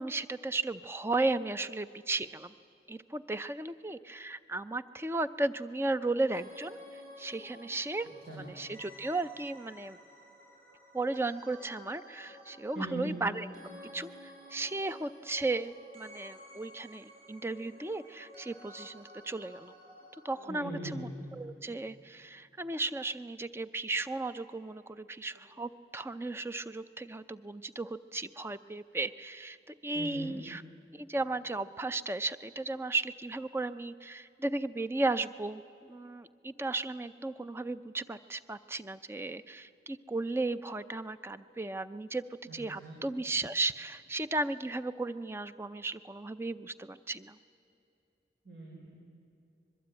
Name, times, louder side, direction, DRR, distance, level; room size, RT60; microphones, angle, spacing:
voice 1, 0.0-2.6 2.9-8.1 8.4-10.0 10.9-13.5 13.9-19.7 20.2-30.6 30.9-42.2 42.5-47.4, right 2 dB, 15° right, 12 dB, 0.5 m, -35 dB
sound 1, 6.3-20.2, equal, 50° right, 7.3 m, -52 dB
voice 2, 12.7-13.1 20.4-21.0 29.9-30.3 42.5-43.0 48.4-48.9, right 2 dB, 70° right, -4 dB, 5.5 m, -40 dB
24.0 x 22.0 x 9.0 m, 2.8 s
head